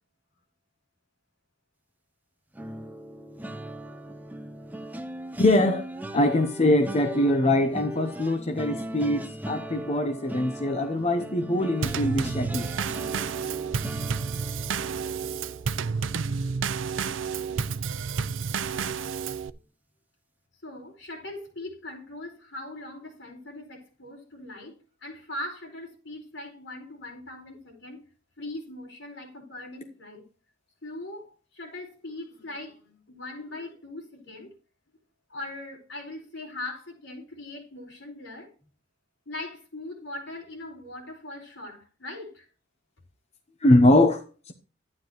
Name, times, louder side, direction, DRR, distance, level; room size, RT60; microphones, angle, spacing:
sound 1, 2.5-17.7 18.1-18.4 18.6-18.9, right 1 dB, 10° right, 0.6 m, -40 dB
voice 1, 5.4-5.8 6.1-12.7 43.6-44.5, left 1 dB, 35° left, 0.8 m, -23 dB
Drum kit / Snare drum / Bass drum, 11.8-19.5, right 5 dB, 75° right, 0.5 m, -30 dB
voice 2, 17.0-17.6 20.6-28.0 28.4-30.2 30.8-34.5 35.3-38.5 39.3-42.5, left 2 dB, 70° left, 4.6 m, -40 dB
12.0 x 9.7 x 3.0 m
head